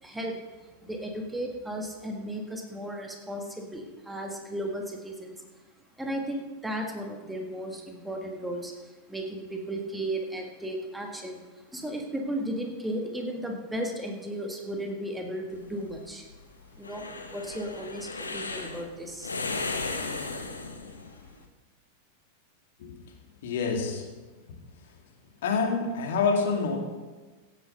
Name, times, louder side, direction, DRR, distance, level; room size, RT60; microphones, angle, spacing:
voice 1, 0.0-5.5 6.0-16.2 16.8-17.0 17.3-19.3 20.8-21.3, right 1 dB, 5° right, 1 dB, 1.7 m, -35 dB
sound 1, 15.5-21.3, left 3 dB, 75° left, 1.3 m, -35 dB
voice 2, 23.4-24.1 25.4-26.8, left 4 dB, 55° left, 2 dB, 2.4 m, -26 dB
16.0 x 8.3 x 5.5 m, 1.3 s
figure-of-eight pair, 90°, 0 cm